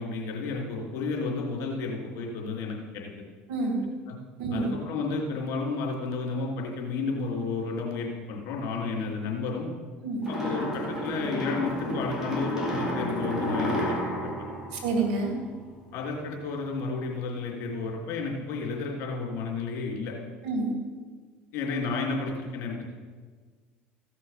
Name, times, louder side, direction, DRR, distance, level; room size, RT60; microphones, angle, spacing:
voice 1, 0.0-3.1 4.1-4.2 4.5-9.7 10.3-14.5 15.9-20.1 21.5-22.9, left 4 dB, 60° left, -1 dB, 3.6 m, -32 dB
voice 2, 3.5-3.8 4.4-4.7 10.0-10.3 14.7-15.4 20.4-20.8, right 3 dB, 75° right, 2 dB, 2.7 m, -28 dB
sound 1, 10.2-15.6, left 1 dB, 10° right, 3.7 m, -31 dB
15.5 x 6.2 x 6.0 m, 1.5 s
hypercardioid pair, 80°, 6 cm